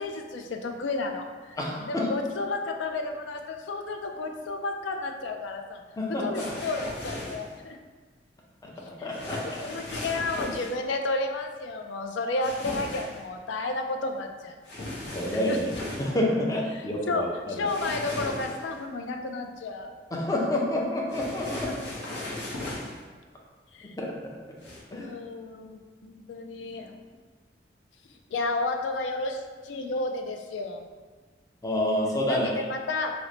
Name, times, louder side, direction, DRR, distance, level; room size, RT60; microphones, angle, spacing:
voice 1, 0.0-1.6 1.9-5.8 6.2-7.8 9.0-14.6 15.3-15.6 16.7-19.9 21.6-21.9 23.7-23.9 24.9-26.9 28.3-30.9 32.3-33.1, left 3 dB, 85° left, 4 dB, 0.4 m, -32 dB
voice 2, 1.6-2.1 6.0-6.3 8.6-9.6 15.1-15.7 16.0-17.3 20.1-21.7 24.0-24.3 24.9-25.1 31.6-32.7, left 1 dB, 20° left, -2 dB, 0.5 m, -28 dB
sound 1, 6.3-7.6 9.1-10.8 12.4-13.2 14.6-16.1 17.7-18.8 21.1-23.0 24.6-24.8, left 2 dB, 70° left, 0.8 m, -37 dB
3.1 x 2.1 x 3.8 m, 1.4 s
head